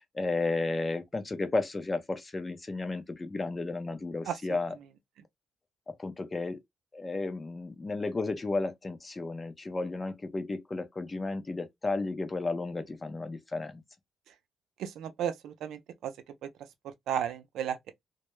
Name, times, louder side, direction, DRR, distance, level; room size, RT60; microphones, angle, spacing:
voice 1, 0.0-4.8 5.9-6.6 6.9-13.8, left 3 dB, 25° left, 0.5 m, -33 dB
voice 2, 14.8-16.1 17.1-17.9, right 9 dB, 80° right, 0.4 m, -33 dB
2.2 x 2.0 x 3.0 m
cardioid pair, 90°, 0 cm